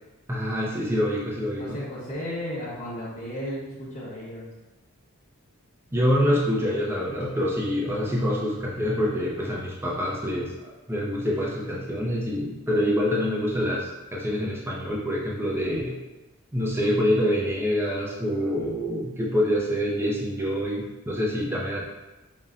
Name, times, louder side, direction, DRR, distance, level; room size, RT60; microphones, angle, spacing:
voice 1, 0.3-1.8 5.9-16.0 16.5-21.8, equal, 10° right, -3 dB, 0.5 m, -26 dB
voice 2, 1.6-4.5, equal, 30° left, -10 dB, 1.0 m, -34 dB
5.4 x 2.1 x 2.5 m, 1.1 s
head